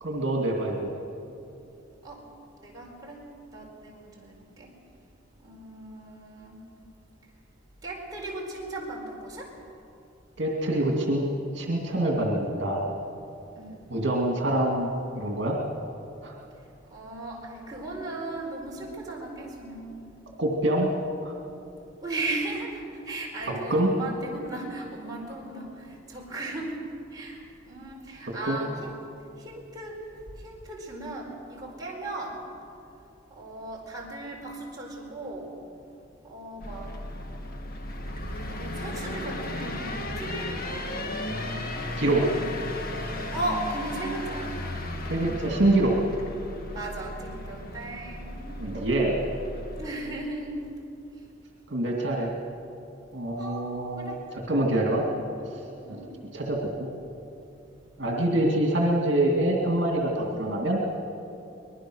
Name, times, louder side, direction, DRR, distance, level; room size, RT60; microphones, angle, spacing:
voice 1, 0.0-0.9 10.4-12.8 13.9-15.6 16.2-16.3 20.4-20.9 21.2-21.3 23.5-23.9 28.5-28.6 42.0-42.3 45.1-45.9 48.6-49.2 51.7-52.3 53.1-54.2 54.5-55.0 56.3-56.9 58.0-60.8, right 1 dB, 65° right, 0 dB, 2.5 m, -25 dB
voice 2, 2.6-3.2 3.5-4.7 5.4-6.6 7.8-9.5 13.6-13.8 16.9-20.1 22.0-26.8 27.1-29.0 29.4-30.0 30.4-32.4 33.3-35.5 36.2-36.9 38.5-41.1 42.1-42.5 43.3-44.5 46.7-48.6 49.8-50.6 53.4-53.7 54.0-54.2 55.8-56.1, right 2 dB, 20° right, -3 dB, 4.5 m, -37 dB
sound 1, 36.6-49.9, left 1 dB, 50° left, 1.7 m, -35 dB
24.0 x 20.0 x 6.4 m, 2.8 s
head